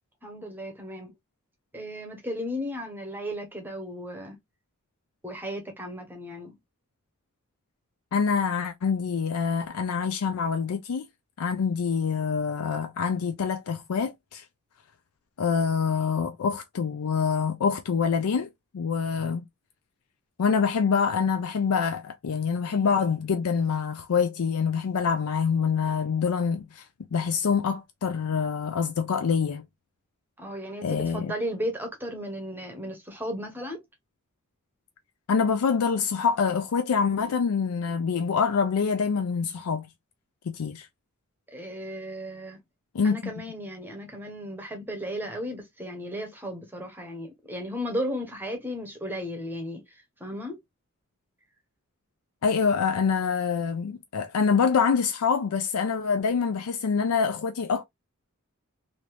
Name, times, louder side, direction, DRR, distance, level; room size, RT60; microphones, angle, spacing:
voice 1, 0.2-1.1 1.7-4.4 5.2-6.5 30.4-33.8 41.5-42.6 43.0-50.6, equal, 10° right, 0.8 m, -35 dB
voice 2, 8.1-11.0 11.4-14.4 15.4-19.5 20.4-26.9 27.1-29.6 30.8-31.3 35.3-39.9 40.5-40.9 42.9-43.3 52.4-57.8, left 6 dB, 85° left, 0.4 m, -25 dB
3.3 x 2.6 x 2.9 m
head